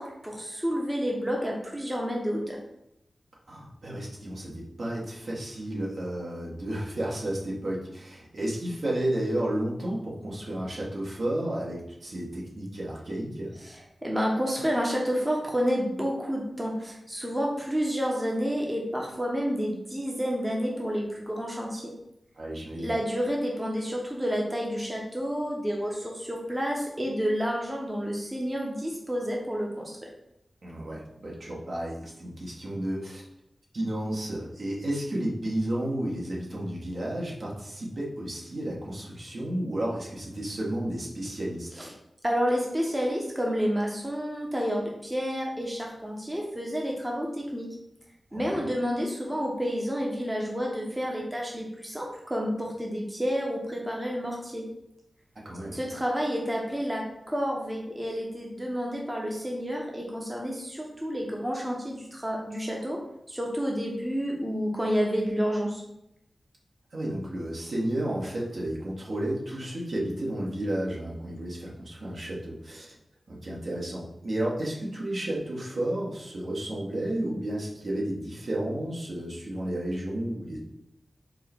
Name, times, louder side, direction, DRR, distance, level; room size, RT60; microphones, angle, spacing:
voice 1, 0.0-2.6 13.6-21.9 22.8-30.1 41.8-41.9 42.2-47.7 48.3-54.6 55.7-63.0 63.3-65.8, equal, 15° right, -1 dB, 0.7 m, -30 dB
voice 2, 3.5-13.5 22.4-22.9 30.6-33.2 33.7-41.8 48.3-48.6 55.4-55.8 66.9-73.0 73.3-80.6, right 1 dB, 60° right, -4 dB, 1.1 m, -32 dB
4.6 x 2.2 x 4.3 m, 0.82 s
wide cardioid pair, 100°, 0 cm